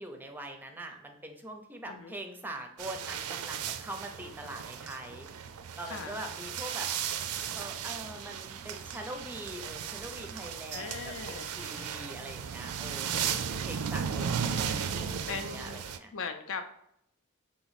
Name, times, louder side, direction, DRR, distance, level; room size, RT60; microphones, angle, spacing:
voice 1, 0.0-5.3 5.8-6.9 7.5-16.1, right 1 dB, 10° right, 4 dB, 0.5 m, -43 dB
sound 1, 2.8-16.0, right 7 dB, 85° right, 0.4 m, -36 dB
voice 2, 5.9-6.2 10.7-12.0 13.1-13.6 15.3-15.8 16.1-16.6, left 5 dB, 65° left, 7 dB, 0.5 m, -40 dB
3.8 x 3.0 x 4.0 m, 0.73 s
head